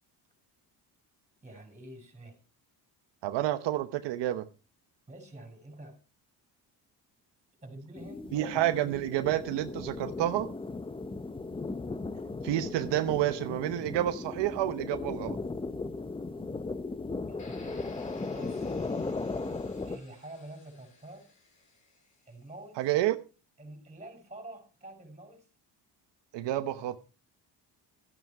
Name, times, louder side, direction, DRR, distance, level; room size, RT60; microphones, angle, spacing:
voice 1, 1.4-2.4 5.1-6.0 7.6-8.9 17.1-17.8 18.3-18.7 19.8-21.3 22.3-22.9 23.6-25.5, right 1 dB, 15° right, 5 dB, 5.3 m, -47 dB
voice 2, 3.2-4.4 8.3-10.5 12.4-15.4 22.8-23.2 26.3-27.0, right 13 dB, 80° right, 9 dB, 0.9 m, -29 dB
sound 1, 8.0-20.0, left 3 dB, 15° left, 0.7 m, -37 dB
sound 2, 17.4-22.4, left 2 dB, 45° left, 6.4 m, -56 dB
13.5 x 9.4 x 4.6 m, 0.34 s
cardioid pair, 125°, 42 cm